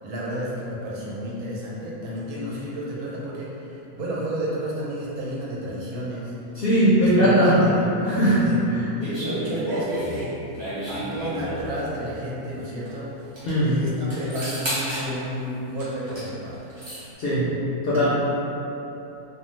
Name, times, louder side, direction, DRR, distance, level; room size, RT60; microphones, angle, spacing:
voice 1, 0.0-6.3 7.0-8.1 8.4-10.5 10.9-13.1 13.6-16.7, equal, 85° right, -6 dB, 1.2 m, -31 dB
voice 2, 6.5-7.6 8.0-8.4 8.7-8.8 13.4-13.7 17.2-17.5 17.8-18.1, equal, 65° left, -9 dB, 0.6 m, -19 dB
sound 1, 9.0-11.8 12.9-13.0 13.2-13.5 14.1-15.1 15.8-16.3 16.5-17.0, equal, 45° right, 0.3 m, -32 dB
2.7 x 2.1 x 3.0 m, 2.9 s
omnidirectional pair, 1.6 m